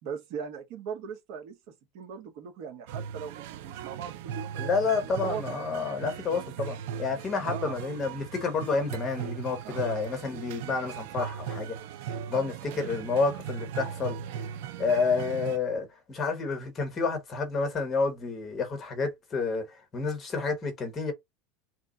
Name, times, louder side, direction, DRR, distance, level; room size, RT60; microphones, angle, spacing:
voice 1, 0.0-4.6 4.9-5.5 7.4-7.8 9.6-9.9 12.3-12.9, right 7 dB, 55° right, 1.1 m, -40 dB
sound 1, 2.9-15.6, right 8 dB, 70° right, 0.5 m, -38 dB
voice 2, 4.6-11.8 12.3-14.2 14.8-21.1, left 4 dB, 25° left, 1.1 m, -29 dB
3.1 x 2.3 x 3.8 m
supercardioid pair, 160°, 0 cm